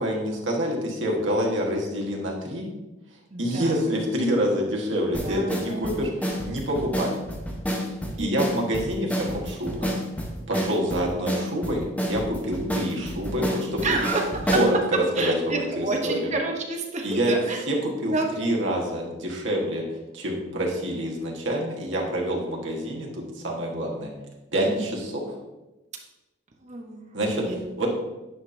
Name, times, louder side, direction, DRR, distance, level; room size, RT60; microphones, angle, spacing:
voice 1, 0.0-2.7 3.4-6.1 6.4-7.1 8.2-9.9 10.5-14.0 14.5-16.3 17.0-17.3 17.7-19.8 20.1-24.1 24.5-25.4 27.1-27.4 27.8-27.9, equal, 75° right, -1 dB, 1.4 m, -27 dB
voice 2, 3.3-3.8 5.2-5.8 8.2-8.3 12.4-12.5 13.8-14.2 14.9-17.6 18.1-18.3 24.6-24.9 26.6-27.0 27.4-27.6, right 3 dB, 40° right, 2 dB, 0.9 m, -29 dB
sound 1, 5.1-14.7, equal, 10° left, 0.9 m, -29 dB
9.5 x 5.1 x 2.7 m, 1.1 s
head